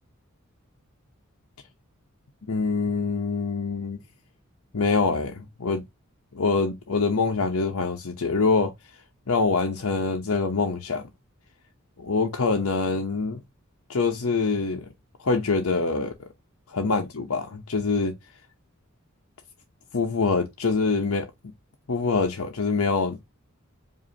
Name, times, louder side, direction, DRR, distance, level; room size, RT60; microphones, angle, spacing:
voice 1, 2.5-4.0 4.7-5.8 6.3-8.7 9.3-11.0 12.0-13.4 13.9-14.9 15.2-16.1 16.7-18.1 19.9-21.3 21.9-23.2, left 4 dB, 90° left, 0.8 m, -25 dB
5.0 x 2.7 x 2.7 m
head